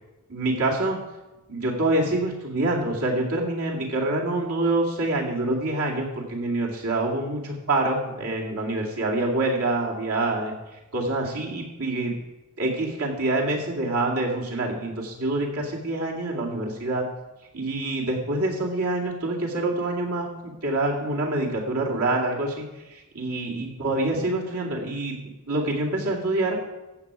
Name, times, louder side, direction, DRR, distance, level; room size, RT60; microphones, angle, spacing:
voice 1, 0.3-1.0 1.5-10.5 10.9-12.1 12.6-17.0 17.5-25.2 25.5-26.6, right 2 dB, 75° right, -2 dB, 2.4 m, -26 dB
14.5 x 8.0 x 4.8 m, 1.0 s
head